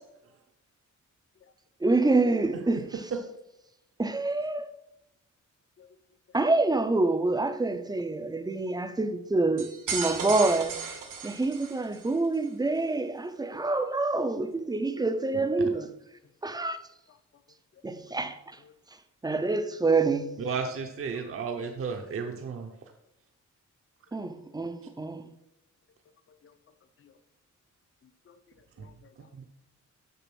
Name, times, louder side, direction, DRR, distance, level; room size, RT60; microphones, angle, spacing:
voice 1, 1.8-3.1 4.0-4.7 6.3-10.8 11.2-15.9 16.4-16.8 17.8-18.6 19.2-20.4 24.1-25.3, right 3 dB, 15° right, 0.5 m, -27 dB
sound 1, 9.6-12.1, right 5 dB, 85° right, 1.7 m, -35 dB
voice 2, 16.2-16.6 17.7-18.1 18.6-18.8 21.1-21.5 26.3-26.6 27.0-27.2 28.0-29.5, left 7 dB, 40° left, 0.7 m, -60 dB
voice 3, 20.4-22.7 28.8-28.9 29.3-29.5, right 5 dB, 45° right, 0.7 m, -33 dB
7.0 x 6.9 x 6.0 m
wide cardioid pair, 170°, 31 cm